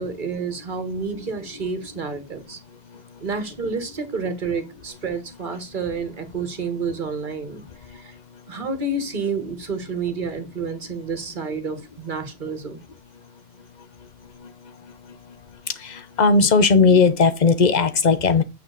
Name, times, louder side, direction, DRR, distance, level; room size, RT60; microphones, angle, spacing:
voice 1, 0.0-2.6 3.2-7.6 7.9-8.1 8.5-12.8, right 4 dB, 50° right, 1.5 m, -29 dB
voice 2, 15.8-18.4, left 4 dB, 45° left, 0.9 m, -17 dB
8.5 x 5.7 x 3.9 m
omnidirectional pair, 1.1 m